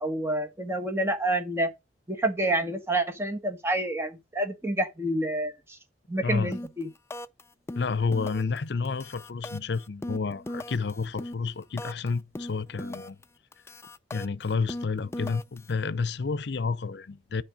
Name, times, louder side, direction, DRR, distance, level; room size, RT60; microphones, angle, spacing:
voice 1, 0.0-1.7 2.1-5.5 6.1-6.9, right 1 dB, 15° right, 1.3 m, -28 dB
voice 2, 6.2-6.5 7.7-13.2 14.1-17.4, left 4 dB, 65° left, 0.6 m, -30 dB
sound 1, 6.5-6.8 7.1-7.4 7.7-8.6 8.8-12.1 12.3-13.2 13.5-15.7, left 1 dB, 15° left, 0.4 m, -38 dB
9.4 x 5.4 x 5.0 m
head